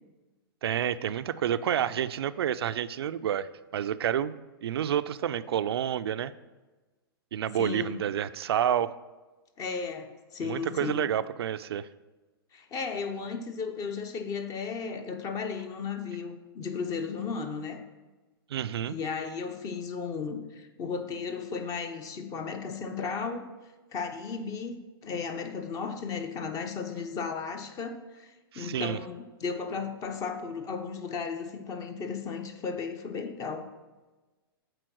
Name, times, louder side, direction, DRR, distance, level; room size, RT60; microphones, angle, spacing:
voice 1, 0.6-4.3 4.6-6.3 7.3-8.9 10.4-11.9 18.5-19.0 28.5-29.0, right 10 dB, 80° right, 13 dB, 0.4 m, -29 dB
voice 2, 7.6-8.0 9.6-11.0 12.5-17.8 18.8-23.5 23.9-24.8 25.0-33.6, left 5 dB, 25° left, 8 dB, 0.8 m, -35 dB
7.7 x 4.6 x 6.1 m, 1.2 s
hypercardioid pair, 130°, 13 cm